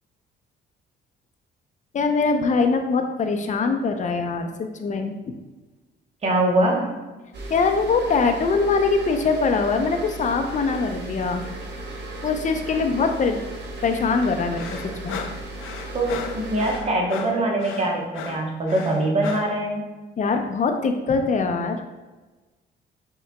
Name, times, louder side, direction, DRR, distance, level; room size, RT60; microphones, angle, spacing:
voice 1, 1.9-5.3 7.5-11.5 12.2-13.4 13.8-15.2 20.2-21.8, left 4 dB, 40° left, 5 dB, 0.6 m, -23 dB
voice 2, 6.2-7.0 15.9-19.8, right 1 dB, 35° right, -1 dB, 1.0 m, -23 dB
sound 1, 7.3-16.8, right 2 dB, 60° right, 1.1 m, -36 dB
sound 2, 14.6-19.6, left 6 dB, 85° left, 0.4 m, -36 dB
5.5 x 3.8 x 2.2 m, 1.2 s
cardioid pair, 90°, 20 cm